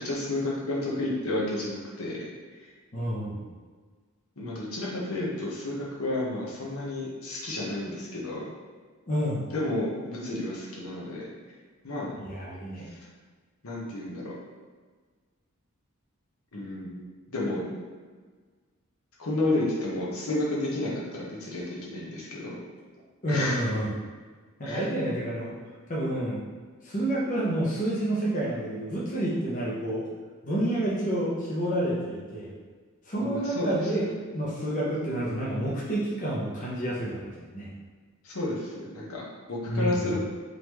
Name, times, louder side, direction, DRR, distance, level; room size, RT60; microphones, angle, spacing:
voice 1, 0.0-2.2 4.4-8.5 9.5-11.3 11.8-12.1 13.6-14.3 16.5-17.8 19.2-22.6 23.3-23.6 24.6-24.9 33.2-33.7 34.0-34.1 38.2-40.2, left 2 dB, 70° left, -5 dB, 1.0 m, -31 dB
voice 2, 2.9-3.4 9.1-9.4 12.2-12.9 23.2-23.9 24.6-25.5 25.9-26.5 26.8-30.0 30.4-32.5 33.1-34.0 34.3-37.7 39.7-40.2, right 1 dB, 35° left, -7 dB, 0.7 m, -29 dB
3.9 x 3.2 x 3.0 m, 1.5 s
head